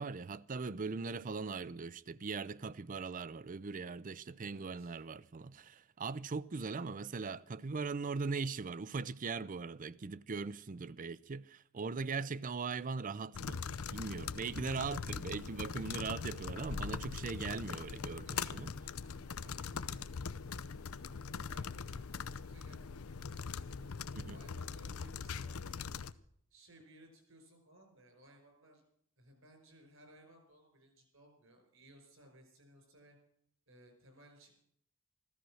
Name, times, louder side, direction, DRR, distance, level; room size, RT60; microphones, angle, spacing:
voice 1, 0.0-13.6 13.9-18.7 24.1-24.4, right 4 dB, 40° right, 0.5 m, -40 dB
voice 2, 4.4-4.9 11.8-12.3 18.2-18.7 19.4-20.9 21.3-23.9 24.3-25.9 26.5-28.8 29.2-33.2 33.7-34.5, right 1 dB, 65° right, 5.4 m, -62 dB
sound 1, 13.3-26.1, left 5 dB, 85° left, 0.6 m, -42 dB
15.0 x 13.5 x 6.3 m
head